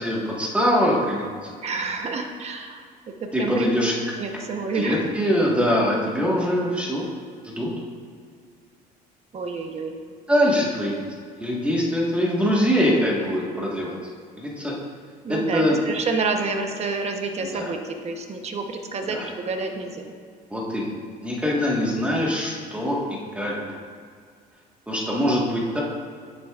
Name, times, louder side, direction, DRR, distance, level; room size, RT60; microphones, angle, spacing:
voice 1, 0.0-1.5 3.3-3.9 4.7-7.0 7.4-7.7 10.3-11.1 11.4-13.9 14.4-14.7 15.3-15.8 17.4-17.7 19.0-19.3 20.5-20.9 21.2-23.0 23.3-23.6 24.9-25.8, equal, 5° right, -4 dB, 1.5 m, -23 dB
voice 2, 1.6-2.8 3.2-3.7 4.2-5.0 9.3-10.0 15.2-20.1 25.1-25.2, right 4 dB, 40° right, 4 dB, 0.9 m, -29 dB
9.9 x 8.1 x 2.4 m, 2.1 s
cardioid pair, 110°, 17 cm